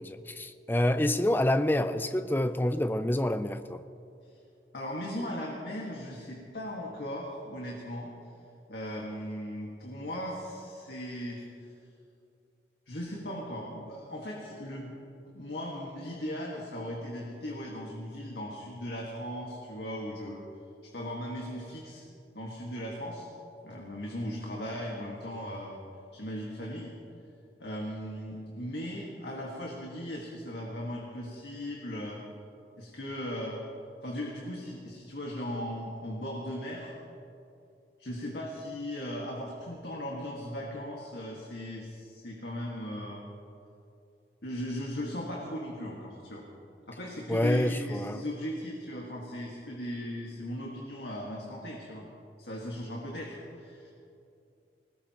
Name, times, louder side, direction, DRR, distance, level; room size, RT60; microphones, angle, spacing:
voice 1, 0.0-3.8 47.3-48.2, left 1 dB, 10° left, 10 dB, 0.5 m, -27 dB
voice 2, 4.7-8.1 8.7-11.5 12.9-14.9 15.3-20.4 20.8-22.0 22.3-23.3 23.6-25.8 26.1-26.9 27.6-32.2 32.8-33.6 34.0-36.9 38.0-43.2 44.4-46.5 46.9-52.1 52.4-53.9, equal, 75° left, -3 dB, 1.8 m, -38 dB
21.0 x 19.5 x 3.0 m, 2.6 s
head